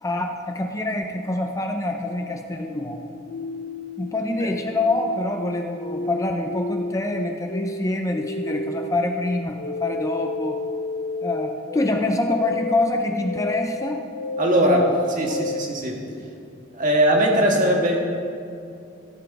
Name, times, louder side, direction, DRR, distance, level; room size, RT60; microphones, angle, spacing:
voice 1, 0.0-3.1 4.0-10.6 11.2-14.0 14.6-15.0 15.2-15.4, left 2 dB, 15° left, 3 dB, 0.5 m, -25 dB
sound 1, 2.5-15.7, left 2 dB, 60° left, 0.6 m, -32 dB
voice 2, 14.4-14.9 15.2-16.0 16.7-18.0, right 1 dB, 45° right, 0 dB, 1.8 m, -20 dB
14.5 x 7.3 x 4.8 m, 2.5 s
head